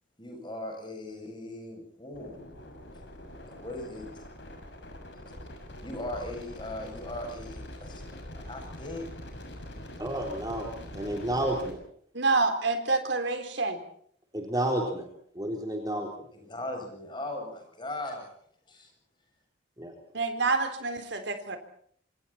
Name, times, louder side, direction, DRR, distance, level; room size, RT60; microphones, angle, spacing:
voice 1, 0.2-2.4 3.4-4.2 5.1-5.5 5.8-9.1 16.3-18.3 18.7-18.9, left 1 dB, 25° left, 3 dB, 7.8 m, -39 dB
sound 1, 2.1-11.7, left 1 dB, 65° left, 6.8 m, -44 dB
voice 2, 10.0-11.8 14.3-15.1 15.4-16.1 19.8-19.9, right 1 dB, 20° right, 1 dB, 3.8 m, -30 dB
voice 3, 12.2-13.8 20.1-21.6, right 3 dB, 65° right, 7 dB, 3.8 m, -27 dB
27.5 x 27.0 x 4.4 m, 0.62 s
head